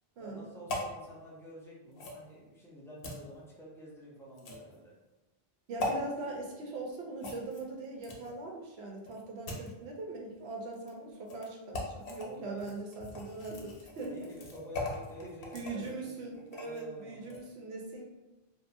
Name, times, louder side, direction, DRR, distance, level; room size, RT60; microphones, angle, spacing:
voice 1, 0.2-4.9 12.2-12.7 14.0-16.3 16.5-17.4, right 1 dB, 5° left, -6 dB, 0.3 m, -49 dB
sound 1, 0.7-0.9 2.0-2.2 3.0-3.2 4.4-4.7 5.8-5.9 7.2-8.4 9.0-9.7 10.7-10.9 11.3-11.5 11.7-12.3 12.6-16.8 17.2-17.4, left 2 dB, 65° left, 0.7 m, -40 dB
voice 2, 5.7-14.2 15.5-18.0, right 2 dB, 80° right, 0 dB, 0.9 m, -41 dB
2.6 x 2.0 x 2.5 m, 1.1 s
omnidirectional pair, 1.1 m